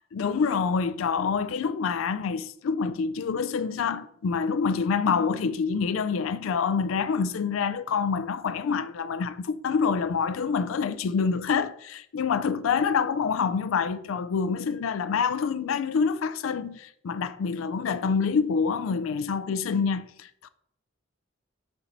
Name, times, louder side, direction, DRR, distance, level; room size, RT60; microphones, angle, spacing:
voice 1, 0.1-20.5, left 5 dB, 90° left, 0.4 m, -26 dB
7.2 x 4.3 x 4.0 m
head